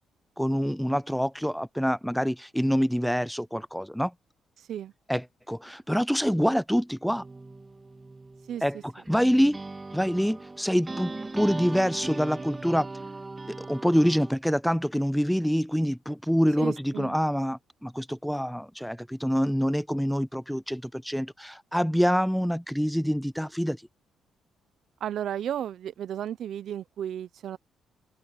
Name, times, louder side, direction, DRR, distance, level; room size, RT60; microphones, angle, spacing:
voice 1, 0.4-4.1 5.1-7.2 8.6-9.6 9.9-12.9 13.5-23.8, equal, ahead, 0.3 m, -26 dB
sound 1, 7.1-14.3, right 3 dB, 20° right, 2.8 m, -39 dB
voice 2, 8.5-8.8 16.6-17.1 25.0-27.6, right 10 dB, 70° right, 0.8 m, -34 dB
open air
cardioid pair, 90°, 0 cm